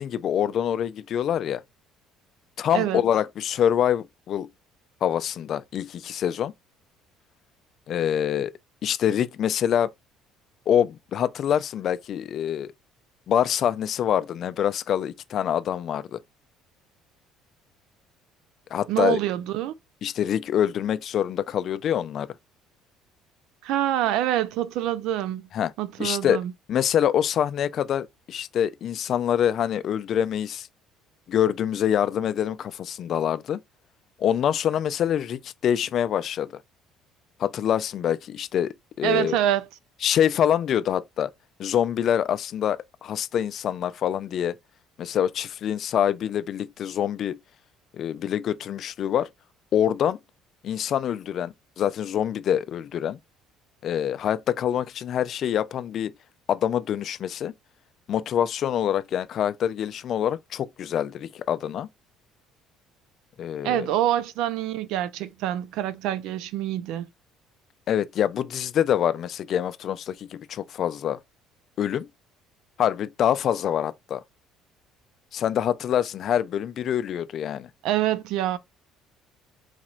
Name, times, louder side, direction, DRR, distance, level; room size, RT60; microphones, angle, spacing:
voice 1, 0.0-1.6 2.6-4.5 5.0-6.5 7.9-8.5 8.8-9.9 10.7-12.7 13.3-16.2 18.7-19.2 20.0-22.3 25.5-25.7 26.0-26.4 26.7-30.7 31.3-33.6 34.2-36.5 37.4-39.4 40.0-41.3 41.6-44.5 45.0-47.4 47.9-49.3 49.7-50.2 50.6-53.2 53.8-56.1 56.5-57.5 58.1-61.9 63.4-63.9 67.9-71.2 71.8-72.1 72.8-74.2 75.3-77.7, left 9 dB, 55° left, 0.3 m, -25 dB
voice 2, 18.9-19.7 23.6-25.5 25.8-26.5 39.0-39.7 63.6-67.1 77.8-78.6, right 12 dB, 75° right, 0.4 m, -26 dB
4.0 x 3.0 x 2.4 m
cardioid pair, 105°, 0 cm